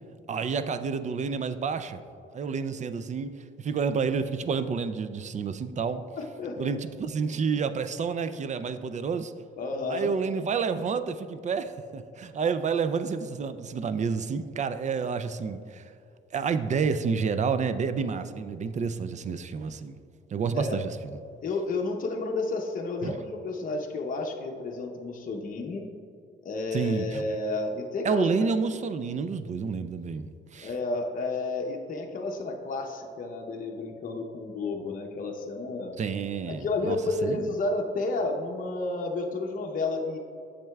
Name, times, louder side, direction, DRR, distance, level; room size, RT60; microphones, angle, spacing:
voice 1, 0.3-2.0 2.3-6.0 6.6-9.3 9.9-15.8 16.3-20.0 20.3-20.9 23.0-23.1 26.7-27.2 28.0-30.7 36.0-37.0 37.2-37.5, right 5 dB, 35° right, 11 dB, 0.4 m, -29 dB
voice 2, 6.2-6.7 9.6-10.1 20.5-20.8 21.4-25.9 26.4-28.3 30.6-36.0 36.5-40.2, left 3 dB, 45° left, 0 dB, 0.7 m, -31 dB
8.9 x 6.5 x 2.3 m, 2.5 s
cardioid pair, 90°, 20 cm